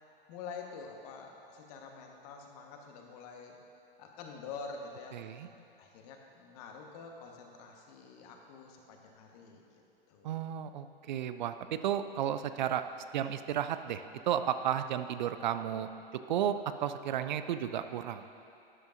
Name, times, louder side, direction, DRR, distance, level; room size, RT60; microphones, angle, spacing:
voice 1, 0.3-3.6 4.0-5.2 5.8-9.6 10.1-10.3, left 5 dB, 40° left, 2 dB, 1.3 m, -47 dB
voice 2, 5.1-5.5 10.2-12.8 13.1-15.9 16.3-18.2, right 10 dB, 50° right, 10 dB, 0.5 m, -33 dB
12.5 x 10.5 x 2.6 m, 2.7 s
figure-of-eight pair, 100°, 30 cm